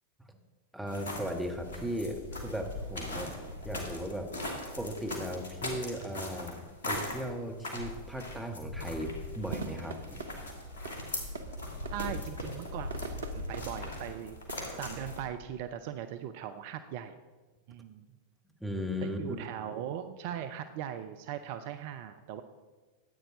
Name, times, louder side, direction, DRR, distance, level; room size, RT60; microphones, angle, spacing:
voice 1, 0.7-3.3 3.6-4.3 4.8-10.4 18.6-19.2, equal, ahead, 2 dB, 1.5 m, -37 dB
sound 1, 0.9-15.2, left 1 dB, 65° left, 2.7 m, -40 dB
sound 2, 9.5-14.8, right 4 dB, 65° right, 1.0 m, -44 dB
voice 2, 11.9-12.9 13.3-14.4 14.7-17.1 17.7-18.1 19.0-22.4, right 10 dB, 50° right, 10 dB, 0.5 m, -39 dB
13.5 x 9.0 x 3.9 m, 1.3 s
figure-of-eight pair, 90°, 0 cm